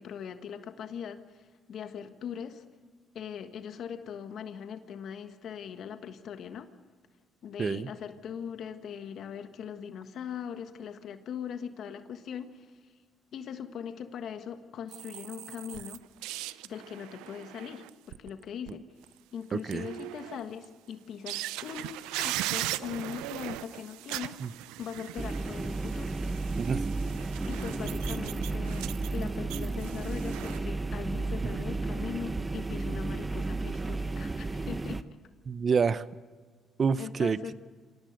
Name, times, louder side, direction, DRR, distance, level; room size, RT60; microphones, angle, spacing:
voice 1, 0.0-2.6 3.1-6.7 7.4-12.7 13.3-16.0 16.6-18.8 19.3-24.4 24.8-26.2 27.5-35.0 37.0-37.5, left 8 dB, 65° left, 8 dB, 1.5 m, -40 dB
voice 2, 7.6-7.9 19.5-19.9 24.4-24.5 26.6-27.0 35.4-36.1 36.8-37.5, right 5 dB, 45° right, 16 dB, 0.8 m, -28 dB
sound 1, 14.9-18.7 19.0-19.1 19.6-20.6 21.3-30.6, right 16 dB, 90° right, 0.6 m, -39 dB
sound 2, 25.2-35.0, right 3 dB, 25° right, 1.2 m, -33 dB
26.5 x 17.5 x 6.6 m, 1.6 s
supercardioid pair, 65°, 0 cm